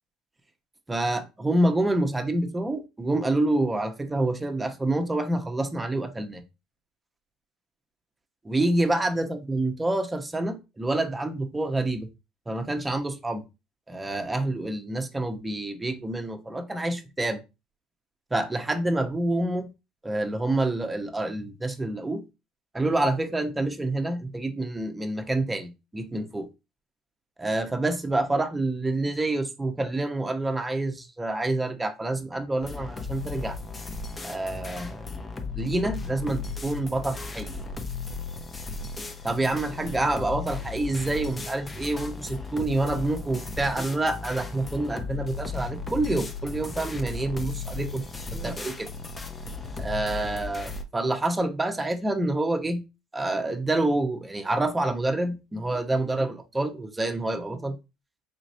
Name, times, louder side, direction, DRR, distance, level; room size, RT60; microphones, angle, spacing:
voice 1, 0.9-6.4 8.4-12.1 12.5-13.4 13.9-17.4 18.3-19.7 20.0-22.2 22.7-26.5 27.4-33.6 34.2-35.1 35.6-37.6 39.2-48.0 48.3-48.9 49.8-52.8 53.1-57.8, right 2 dB, 15° right, 0.9 m, -27 dB
sound 1, 32.6-50.8, left 4 dB, 25° left, 0.8 m, -36 dB
5.1 x 3.0 x 2.7 m
hypercardioid pair, 80°, 0 cm